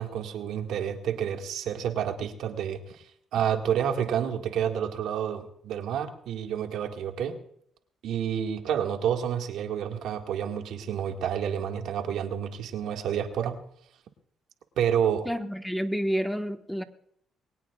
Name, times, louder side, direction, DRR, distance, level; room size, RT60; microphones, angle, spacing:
voice 1, 0.0-7.4 8.0-13.6 14.8-15.3, right 9 dB, 75° right, 4 dB, 1.9 m, -29 dB
voice 2, 15.2-16.8, equal, ahead, 7 dB, 1.4 m, -29 dB
22.0 x 18.5 x 2.4 m, 0.67 s
supercardioid pair, 70°, 0 cm